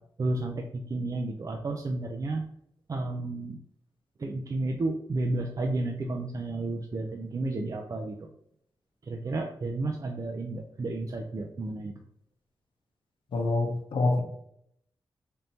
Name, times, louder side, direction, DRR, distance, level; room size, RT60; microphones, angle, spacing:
voice 1, 0.2-2.4 2.9-3.6 4.2-8.2 9.1-11.9, right 2 dB, 45° right, 2 dB, 0.4 m, -32 dB
voice 2, 13.3-14.2, left 2 dB, 80° left, 4 dB, 0.7 m, -26 dB
3.5 x 2.7 x 4.1 m, 0.72 s
cardioid pair, 70°, 8 cm